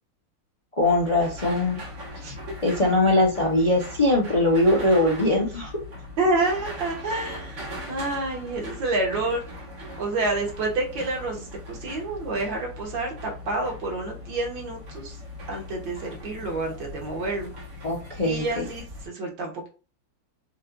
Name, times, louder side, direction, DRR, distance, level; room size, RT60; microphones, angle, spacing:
voice 1, 0.8-1.8 2.6-5.7 17.8-18.6, left 1 dB, 55° left, 0 dB, 0.4 m, -21 dB
sound 1, 0.8-19.1, left 1 dB, 65° right, 2.0 m, -40 dB
voice 2, 6.2-9.6 10.0-15.2 15.5-17.5 18.2-19.7, right 2 dB, 85° right, 0 dB, 2.0 m, -28 dB
5.3 x 2.3 x 3.8 m, 0.34 s
omnidirectional pair, 2.0 m